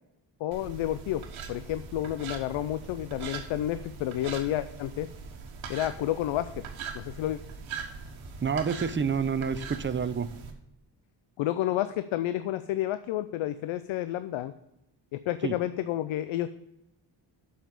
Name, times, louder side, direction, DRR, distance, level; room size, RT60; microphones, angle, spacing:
voice 1, 0.4-1.2 1.5-5.1 5.7-6.6 6.9-7.4 11.4-14.5 15.1-16.5, left 13 dB, 85° left, 12 dB, 0.6 m, -30 dB
sound 1, 0.5-10.5, right 6 dB, 90° right, 1.4 m, -41 dB
voice 2, 8.4-10.3 15.4-15.6, right 6 dB, 25° right, 13 dB, 0.6 m, -28 dB
7.4 x 5.7 x 6.6 m, 0.88 s
cardioid pair, 85°, 46 cm